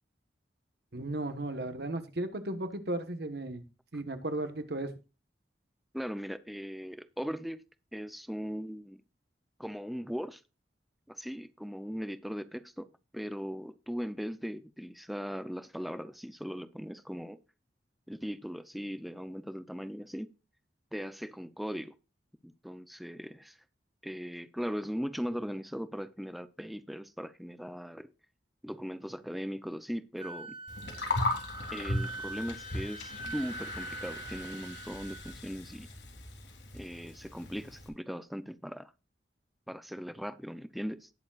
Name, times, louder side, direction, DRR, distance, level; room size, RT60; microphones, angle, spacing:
voice 1, 0.9-3.7 3.9-4.9, right 1 dB, 60° right, 1.3 m, -35 dB
voice 2, 5.9-7.6 7.9-9.0 9.6-10.4 11.1-17.4 18.1-20.3 20.9-21.9 22.4-23.6 24.0-28.1 28.6-30.6 31.7-35.9 36.7-38.9 39.7-41.1, equal, ahead, 0.6 m, -39 dB
Wind instrument woodwind instrument, 30.2-35.3, right 2 dB, 30° right, 2.3 m, -44 dB
Gurgling, 30.7-37.9, left 2 dB, 80° left, 3.2 m, -37 dB
19.0 x 7.1 x 2.4 m
head